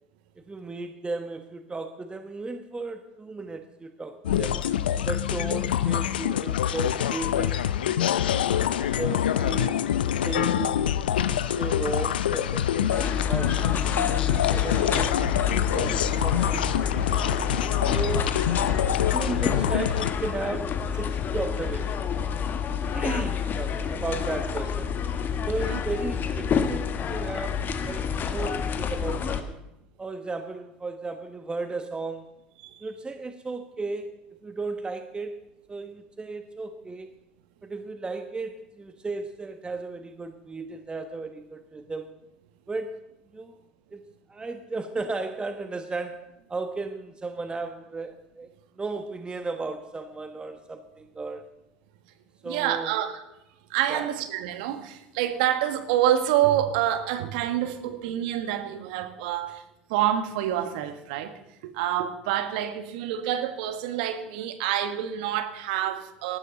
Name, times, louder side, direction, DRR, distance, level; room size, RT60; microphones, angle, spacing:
voice 1, 0.4-4.6 5.1-8.2 9.0-9.9 10.2-10.9 11.1-14.1 14.5-15.5 15.7-17.3 17.9-18.3 18.8-22.1 22.9-24.9 25.5-29.6 30.0-32.3 32.8-34.2 34.4-35.4 35.7-37.1 37.6-42.2 42.7-43.0 43.3-43.6 43.9-44.0 44.3-48.5 48.8-51.5 52.4-53.0 53.9-54.1, right 3 dB, 20° right, 7 dB, 1.2 m, -35 dB
sound 1, 4.2-20.1, left 10 dB, 80° left, 0.6 m, -26 dB
sound 2, 12.9-29.4, left 7 dB, 40° left, 1.6 m, -28 dB
voice 2, 52.4-53.2 53.7-59.6 59.9-61.4 61.7-66.4, right 11 dB, 70° right, 9 dB, 1.5 m, -27 dB
19.5 x 14.0 x 4.0 m, 0.85 s
hypercardioid pair, 75°, 5 cm